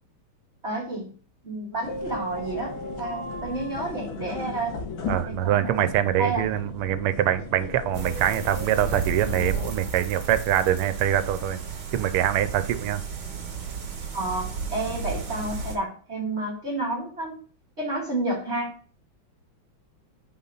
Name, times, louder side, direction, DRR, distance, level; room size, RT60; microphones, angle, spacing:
voice 1, 0.6-1.1 1.4-4.8 5.2-5.8 6.2-6.5 14.1-17.3 17.8-18.8, right 2 dB, 30° right, -3 dB, 2.3 m, -30 dB
sound 1, 1.8-9.7, left 1 dB, 70° left, 1.7 m, -35 dB
voice 2, 5.1-11.6 11.9-13.0, right 11 dB, 90° right, 12 dB, 1.6 m, -24 dB
sound 2, 7.9-15.8, right 6 dB, 60° right, 2.0 m, -34 dB
5.8 x 4.1 x 5.6 m, 0.42 s
omnidirectional pair, 2.4 m